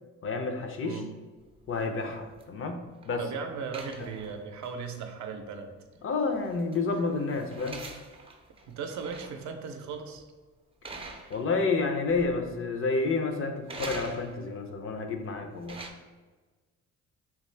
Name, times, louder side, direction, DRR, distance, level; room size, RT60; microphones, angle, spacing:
voice 1, 0.2-1.0 1.7-3.2 6.0-7.8 11.3-15.8, left 4 dB, 45° left, 5 dB, 0.5 m, -30 dB
sound 1, 1.4-3.2 3.7-4.7 4.9-5.0 6.3-9.5 9.9-10.2 10.8-11.8 12.1-12.7 13.7-14.6 15.3-15.9, right 3 dB, 20° right, 0.4 m, -45 dB
voice 2, 3.2-5.7 8.7-10.2, right 6 dB, 70° right, 5 dB, 0.5 m, -37 dB
3.6 x 2.4 x 3.2 m, 1.3 s
cardioid pair, 90°, 30 cm